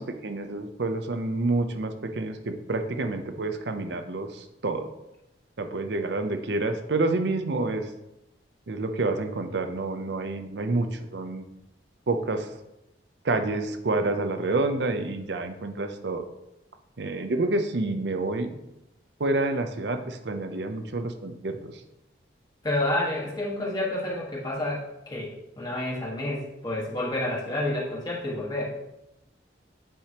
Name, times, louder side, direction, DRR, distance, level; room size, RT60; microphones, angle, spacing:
voice 1, 0.0-4.9 5.6-7.9 8.7-11.4 12.1-12.5 13.2-16.2 17.0-18.6 19.2-21.8, right 2 dB, 70° right, 7 dB, 0.6 m, -28 dB
voice 2, 22.6-25.3 25.6-28.8, left 1 dB, 20° left, -5 dB, 1.4 m, -29 dB
8.8 x 4.9 x 2.9 m, 0.90 s
head